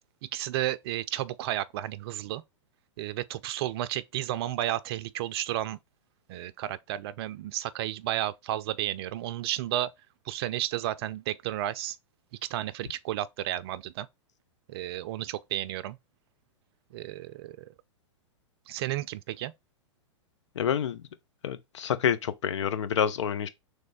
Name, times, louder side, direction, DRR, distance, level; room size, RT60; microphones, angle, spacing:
voice 1, 0.3-2.4 3.0-5.8 6.3-9.9 10.3-12.0 12.4-14.1 14.7-16.0 16.9-17.7 18.7-19.5, right 13 dB, 55° right, 0.4 m, -32 dB
voice 2, 20.6-21.0 21.4-23.5, left 8 dB, 70° left, 0.7 m, -28 dB
3.3 x 3.2 x 4.1 m
hypercardioid pair, 110°, 16 cm